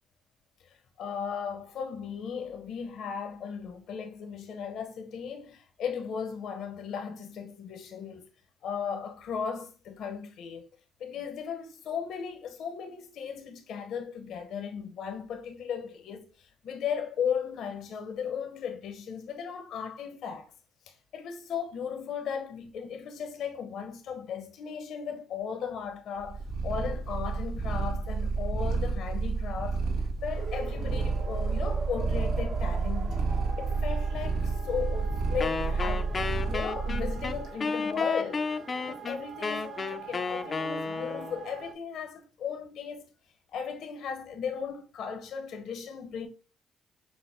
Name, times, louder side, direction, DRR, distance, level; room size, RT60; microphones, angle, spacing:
voice 1, 0.6-8.3 8.6-10.7 11.0-20.5 20.9-29.9 30.2-33.2 33.6-38.4 38.8-43.1 43.5-46.3, left 7 dB, 75° left, 0.8 m, -36 dB
Purr, 26.2-37.5, right 4 dB, 85° right, 1.2 m, -30 dB
sound 1, 30.3-41.7, right 4 dB, 55° right, 1.0 m, -43 dB
Wind instrument woodwind instrument, 35.4-41.4, left 4 dB, 40° left, 0.4 m, -32 dB
6.2 x 2.1 x 3.4 m
cardioid pair, 90°, 0 cm